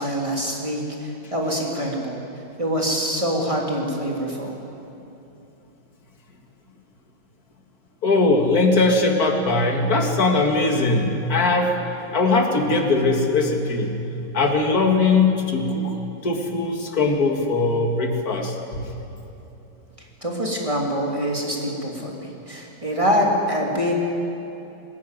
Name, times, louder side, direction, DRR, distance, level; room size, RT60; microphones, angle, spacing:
voice 1, 0.0-2.2 2.6-4.6 20.2-23.9, equal, 15° right, -2 dB, 3.1 m, -25 dB
voice 2, 8.0-11.7 12.1-13.9 14.3-16.0 16.2-18.9, left 3 dB, 50° left, 3 dB, 2.5 m, -20 dB
21.0 x 19.0 x 9.2 m, 2.9 s
omnidirectional pair, 2.1 m